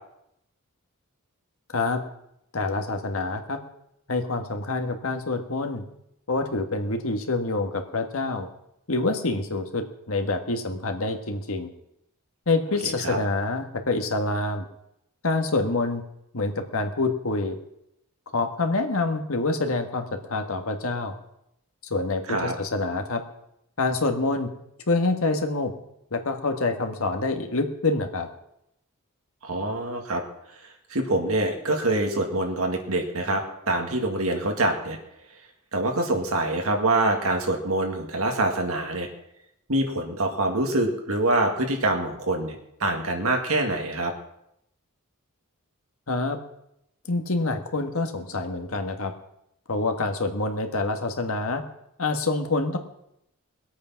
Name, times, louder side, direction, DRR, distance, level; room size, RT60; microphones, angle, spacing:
voice 1, 2.5-3.6 4.1-5.8 6.3-8.5 8.9-11.7 12.5-14.6 15.2-16.0 16.3-17.6 18.3-21.1 21.9-23.2 23.8-24.5 24.9-25.7 26.1-28.3 46.1-46.4 47.1-49.1 49.7-51.6 52.0-52.8, left 3 dB, 70° left, 5 dB, 1.6 m, -26 dB
voice 2, 12.8-13.2 22.3-22.5 29.4-30.2 30.9-35.0 35.7-39.1 39.7-44.1, right 2 dB, 75° right, 3 dB, 2.1 m, -25 dB
20.0 x 8.5 x 5.8 m, 0.80 s
head